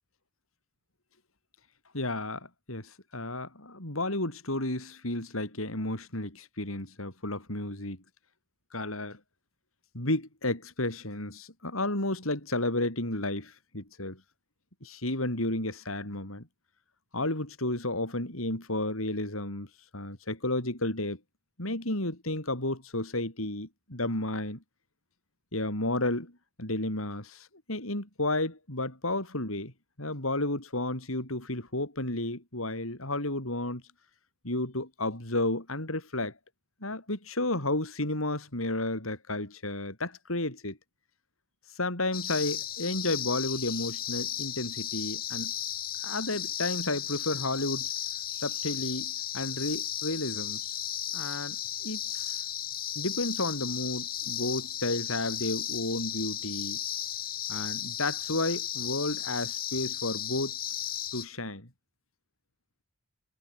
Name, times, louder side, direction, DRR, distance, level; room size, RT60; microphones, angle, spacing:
voice 1, 1.9-8.0 8.7-9.2 9.9-14.2 14.8-16.5 17.1-19.7 19.9-21.2 21.6-24.6 25.5-26.3 26.6-29.7 30.0-33.8 34.4-36.4 36.8-40.8 41.7-45.5 46.0-47.9 48.4-50.8 51.1-52.4 53.0-56.8 57.5-60.5 61.1-61.7, left 2 dB, 80° left, 7.5 m, -32 dB
sound 1, 42.1-61.3, left 10 dB, 45° left, 8.0 m, -35 dB
head